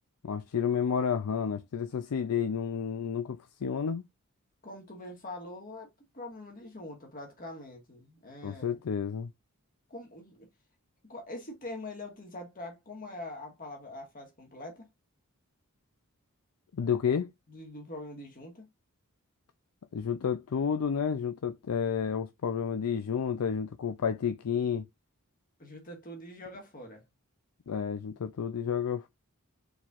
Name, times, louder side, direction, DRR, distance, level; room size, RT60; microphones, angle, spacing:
voice 1, 0.2-4.0 8.4-9.3 16.7-17.3 19.9-24.8 27.7-29.1, left 7 dB, 90° left, 0.4 m, -30 dB
voice 2, 4.6-5.9 6.1-8.8 9.9-10.5 11.0-14.9 17.5-18.7 25.6-27.0, left 1 dB, 40° left, 1.7 m, -43 dB
4.6 x 4.2 x 2.4 m
head